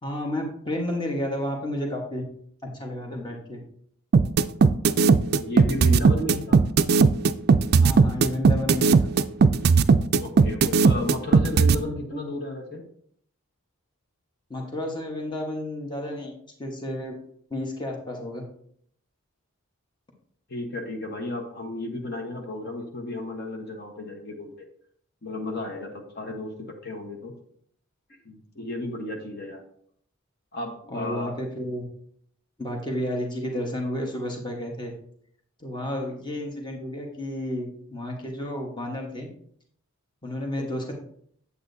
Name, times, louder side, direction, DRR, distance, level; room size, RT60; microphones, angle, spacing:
voice 1, 0.0-2.2 2.6-3.6 7.8-9.1 14.5-16.3 16.6-17.1 17.5-18.4 26.2-26.3 30.9-31.8 32.6-34.9 35.6-39.3 40.2-40.9, left 1 dB, 20° left, 1 dB, 1.2 m, -31 dB
sound 1, 4.1-11.8, right 4 dB, 45° right, 0.3 m, -17 dB
voice 2, 5.1-6.6 10.2-12.8 20.5-24.6 25.2-27.3 28.2-29.6 30.5-31.4 40.6-40.7, left 2 dB, 50° left, 2 dB, 1.1 m, -33 dB
8.5 x 8.2 x 2.7 m, 0.65 s
head